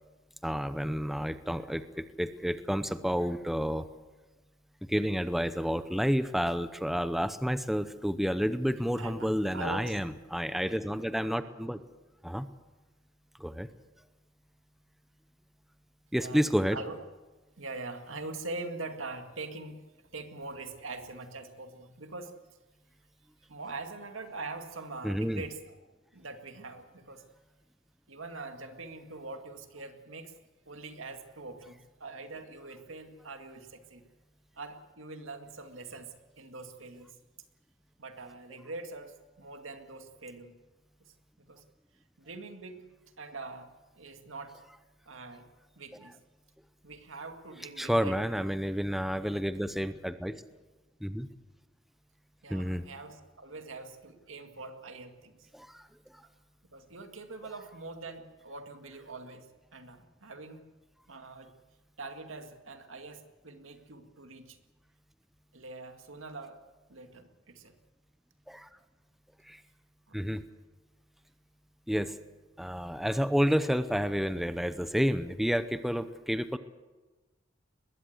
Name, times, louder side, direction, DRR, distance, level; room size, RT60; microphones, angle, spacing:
voice 1, 0.4-3.9 4.9-11.8 12.2-12.5 13.4-13.7 16.1-16.8 25.0-25.4 47.8-50.4 51.0-51.3 52.5-52.8 55.5-55.9 56.1-56.2 68.5-68.7 69.5-69.6 70.1-70.4 71.9-72.1 72.6-76.6, equal, ahead, 11 dB, 0.7 m, -30 dB
voice 2, 9.0-10.0 16.1-17.0 17.6-22.3 23.5-25.8 26.1-27.2 28.1-30.3 30.7-34.0 34.6-37.2 38.0-40.5 41.0-41.6 42.2-42.8 43.2-44.6 45.1-45.5 45.8-46.2 46.8-48.2 52.4-55.5 56.7-59.5 59.7-60.6 61.1-61.5 62.0-64.6 65.5-66.6 66.9-67.7 70.1-70.2, right 3 dB, 85° right, 6 dB, 2.1 m, -43 dB
21.5 x 16.0 x 8.0 m, 1.2 s
head